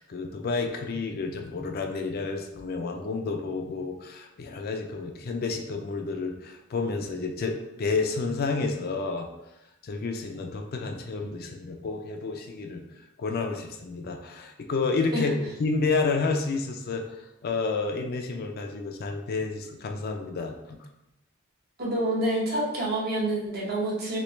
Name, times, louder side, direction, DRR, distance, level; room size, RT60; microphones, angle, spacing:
voice 1, 0.0-9.3 9.8-12.8 13.2-15.3 15.6-20.8, left 4 dB, 50° left, 4 dB, 0.4 m, -30 dB
voice 2, 21.8-24.2, right 1 dB, 50° right, -4 dB, 0.9 m, -27 dB
3.2 x 3.0 x 3.1 m, 0.91 s
head